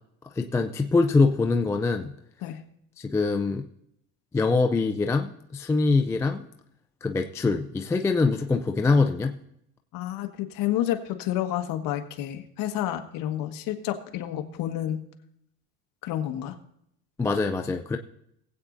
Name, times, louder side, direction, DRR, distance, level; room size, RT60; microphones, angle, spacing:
voice 1, 0.4-2.1 3.0-3.7 4.3-6.4 7.0-9.3 17.2-18.0, left 3 dB, 10° left, 5 dB, 0.3 m, -24 dB
voice 2, 9.9-15.0 16.0-16.6, left 12 dB, 55° left, 6 dB, 1.5 m, -30 dB
20.0 x 8.5 x 2.6 m, 0.75 s
supercardioid pair, 130°, 40 cm